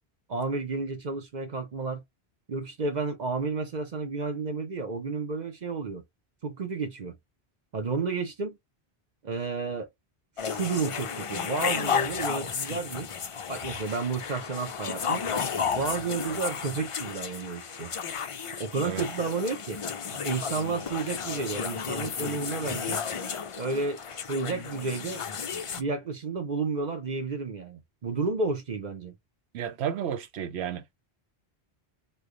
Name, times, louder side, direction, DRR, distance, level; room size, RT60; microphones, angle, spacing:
voice 1, 0.3-2.0 2.5-6.0 6.4-7.2 7.7-8.6 9.2-9.9 10.4-13.1 13.5-15.2 15.8-17.9 18.6-19.8 20.2-23.0 23.6-25.2 25.8-29.1, right 4 dB, 45° right, 0.8 m, -31 dB
sound 1, 10.4-25.8, left 6 dB, 50° left, 0.4 m, -33 dB
voice 2, 29.5-30.8, right 9 dB, 85° right, 0.9 m, -32 dB
3.1 x 2.3 x 3.7 m
omnidirectional pair, 1.1 m